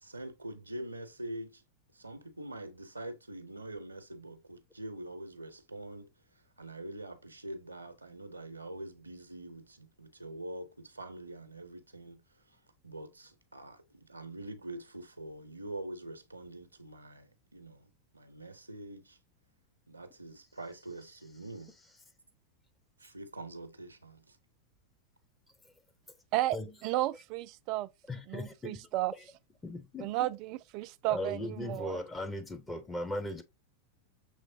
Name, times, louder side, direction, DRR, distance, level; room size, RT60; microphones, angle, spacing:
voice 1, 0.0-1.6 1.9-6.1 6.6-12.2 12.5-12.6 12.8-19.2 19.9-21.7 23.0-24.4, right 1 dB, 85° right, 0.6 m, -44 dB
voice 2, 26.8-27.9 28.3-29.1 30.0-32.0, right 16 dB, 40° right, 0.3 m, -33 dB
voice 3, 28.1-28.9 29.6-30.3 31.1-33.4, left 1 dB, 10° left, 0.7 m, -38 dB
6.3 x 3.1 x 2.6 m
figure-of-eight pair, 90°, 0 cm